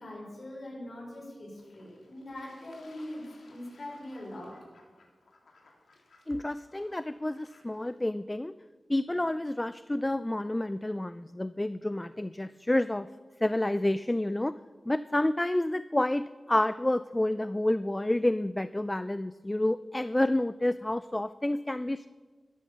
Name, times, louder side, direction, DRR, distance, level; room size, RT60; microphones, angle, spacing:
voice 1, 0.0-3.2 3.5-4.5, left 1 dB, 45° left, -3 dB, 5.3 m, -42 dB
Fowl / Bird / Water, 1.5-8.1, left 3 dB, 80° left, 2.7 m, -61 dB
voice 2, 6.3-8.5 8.9-13.1 13.4-14.5 14.9-22.1, left 1 dB, 15° left, 14 dB, 0.3 m, -29 dB
12.5 x 12.5 x 6.8 m, 1.5 s
wide cardioid pair, 100°, 0 cm